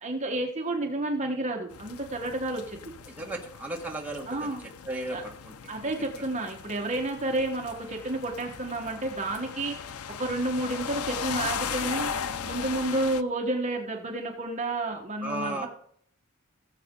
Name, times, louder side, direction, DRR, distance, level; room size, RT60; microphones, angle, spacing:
voice 1, 0.0-2.9 4.3-4.6 5.1-5.2 5.7-9.9 10.2-12.1 12.4-15.7, right 2 dB, 30° right, 2 dB, 1.4 m, -30 dB
sound 1, 1.7-13.2, left 7 dB, 75° left, 0.6 m, -37 dB
voice 2, 3.1-4.5 4.8-5.5 5.8-6.2 15.2-15.7, right 1 dB, 5° right, -1 dB, 1.6 m, -35 dB
17.0 x 7.7 x 3.9 m, 0.63 s
head